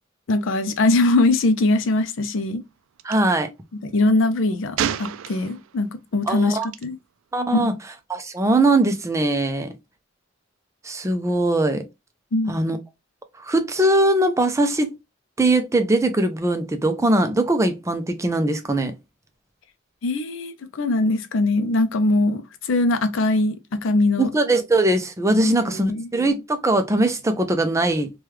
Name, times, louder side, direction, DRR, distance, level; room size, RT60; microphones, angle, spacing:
voice 1, 0.3-2.6 3.7-6.9 7.5-7.7 12.3-12.6 20.0-24.3 25.4-26.1, left 2 dB, 70° left, 0.5 m, -21 dB
voice 2, 3.0-3.5 6.3-6.7 7.3-7.7 8.1-9.7 10.8-11.8 12.5-12.8 13.4-14.9 15.4-18.9 24.2-28.1, right 2 dB, 15° right, 0.4 m, -21 dB
Gunshot gunfire, 3.0-3.2 4.8-5.8 6.6-6.8, right 9 dB, 85° right, 0.3 m, -28 dB
3.2 x 2.3 x 3.0 m
head